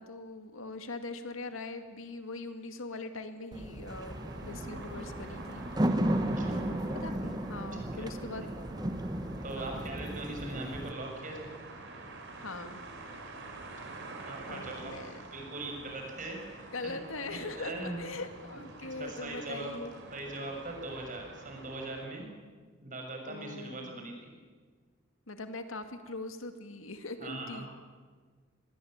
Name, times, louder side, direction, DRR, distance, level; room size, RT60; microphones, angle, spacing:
voice 1, 0.0-6.0 6.5-8.5 8.8-8.9 9.6-9.8 12.4-12.8 14.5-15.3 16.7-19.9 23.2-24.0 25.3-27.7, left 3 dB, 75° left, 8 dB, 2.2 m, -42 dB
sound 1, 3.5-10.9, right 1 dB, 20° right, 1.1 m, -34 dB
sound 2, 3.9-22.1, right 2 dB, 60° right, 4.9 m, -47 dB
voice 2, 6.2-6.6 7.9-8.1 9.4-11.5 14.0-15.0 15.3-17.0 17.3-18.0 18.8-19.8 20.1-22.3 22.8-24.3 27.2-27.7, right 2 dB, 40° right, 2 dB, 6.6 m, -40 dB
26.0 x 20.5 x 9.0 m, 1.5 s
head